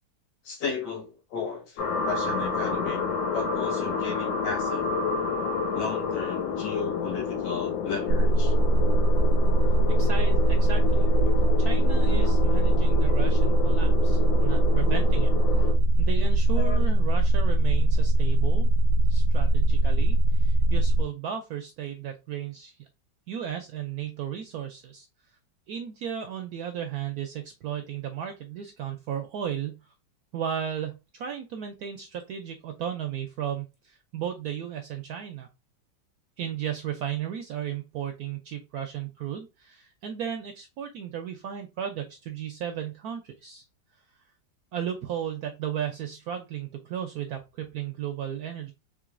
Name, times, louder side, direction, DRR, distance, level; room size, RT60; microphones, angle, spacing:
voice 1, 0.4-3.0 3.3-5.0 5.7-8.5 11.2-11.3 12.1-12.3 13.1-13.2 16.6-16.9, left 5 dB, 65° left, 2.0 m, -35 dB
sound 1, 1.8-15.7, left 5 dB, 85° left, 1.5 m, -30 dB
sound 2, 8.1-21.0, right 2 dB, 90° right, 1.4 m, -21 dB
voice 2, 9.9-11.1 11.6-15.7 16.0-18.7 19.1-22.8 23.3-25.1 25.7-29.8 30.3-35.5 36.4-43.6 44.7-48.7, right 9 dB, 75° right, 0.8 m, -35 dB
3.8 x 3.3 x 2.4 m
omnidirectional pair, 2.0 m